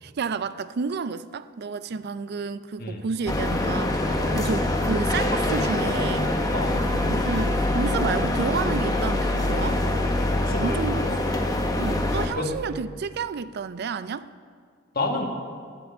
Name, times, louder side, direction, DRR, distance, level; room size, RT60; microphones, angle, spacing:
voice 1, 0.0-4.0 4.3-6.3 7.1-9.8 10.6-11.1 11.8-14.3, right 5 dB, 55° right, 14 dB, 0.4 m, -30 dB
sound 1, 3.1-13.3, equal, 10° right, 3.3 m, -40 dB
London Paddington Station concourse mid-morning, 3.3-12.3, left 1 dB, 20° left, 1.0 m, -24 dB
voice 2, 10.4-11.4 12.4-12.5 14.9-15.2, left 2 dB, 50° left, 1 dB, 1.6 m, -30 dB
9.8 x 7.8 x 8.3 m, 2.1 s
head